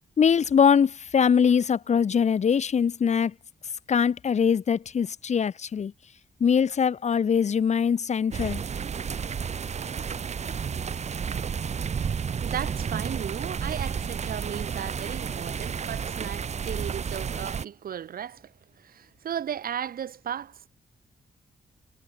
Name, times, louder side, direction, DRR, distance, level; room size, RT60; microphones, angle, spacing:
voice 1, 0.2-3.3 3.9-5.9 6.4-8.6, left 7 dB, 50° left, 2.7 m, -22 dB
sound 1, 8.3-17.6, right 6 dB, 50° right, 5.3 m, -31 dB
voice 2, 12.4-18.5 18.8-20.7, right 9 dB, 85° right, 6.5 m, -35 dB
wide cardioid pair, 165°, 15 cm